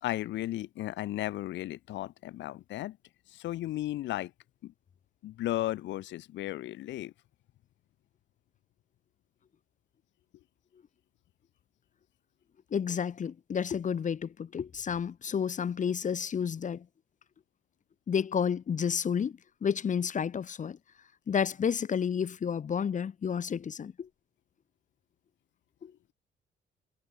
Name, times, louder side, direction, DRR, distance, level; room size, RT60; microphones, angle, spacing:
voice 1, 0.0-3.0 3.3-4.3 4.6-4.7 5.2-7.1, left 15 dB, 70° left, 0.5 m, -35 dB
voice 2, 12.7-16.9 18.1-20.8 21.3-24.1 25.8-25.9, left 7 dB, 40° left, 0.8 m, -31 dB
cardioid pair, 90°, 20 cm